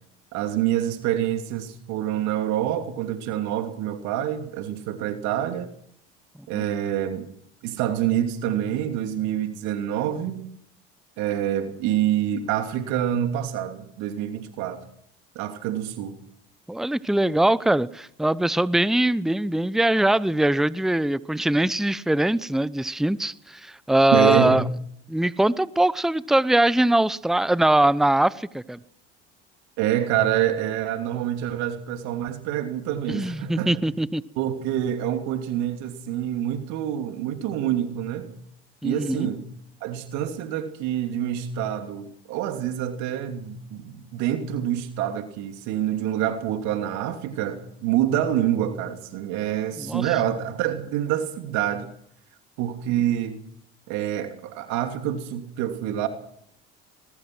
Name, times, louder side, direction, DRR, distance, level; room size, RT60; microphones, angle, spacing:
voice 1, 0.3-5.7 6.5-7.3 7.6-10.4 11.2-14.8 15.3-16.2 24.1-24.6 29.8-33.7 34.4-38.3 38.8-39.4 39.8-51.9 52.6-53.4 53.9-56.1, right 11 dB, 70° right, 2.9 m, -26 dB
voice 2, 16.7-24.6 25.1-28.8 33.1-34.2 38.8-39.3 49.8-50.1, right 1 dB, ahead, 0.8 m, -22 dB
21.5 x 21.0 x 6.1 m
hypercardioid pair, 70°, 30 cm